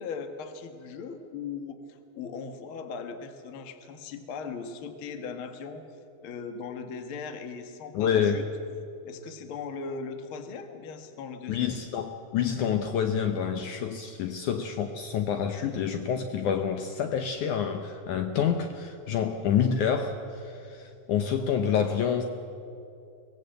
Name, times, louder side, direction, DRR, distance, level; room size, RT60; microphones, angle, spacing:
voice 1, 0.0-5.8 6.2-8.4 9.0-11.8, left 5 dB, 50° left, 6 dB, 1.7 m, -39 dB
voice 2, 7.9-8.4 11.5-22.2, left 7 dB, 70° left, 6 dB, 2.1 m, -28 dB
24.0 x 18.5 x 7.8 m, 2.7 s
omnidirectional pair, 4.1 m